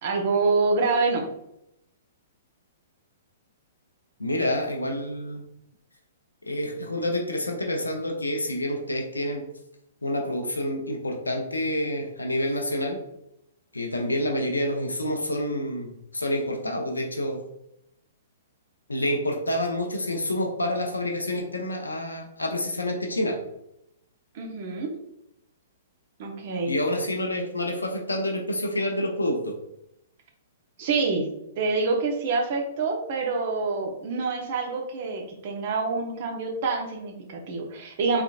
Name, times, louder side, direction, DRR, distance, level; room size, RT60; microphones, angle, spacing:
voice 1, 0.0-1.2 24.3-24.9 26.2-26.7 30.8-31.3 31.6-38.2, right 4 dB, 50° right, 1 dB, 0.9 m, -26 dB
voice 2, 4.2-5.4 6.5-9.4 10.0-13.0 13.7-17.4 18.9-23.4 26.7-29.6, left 1 dB, 85° left, 2 dB, 0.6 m, -28 dB
3.8 x 3.3 x 2.4 m, 0.80 s
figure-of-eight pair, 115°, 0 cm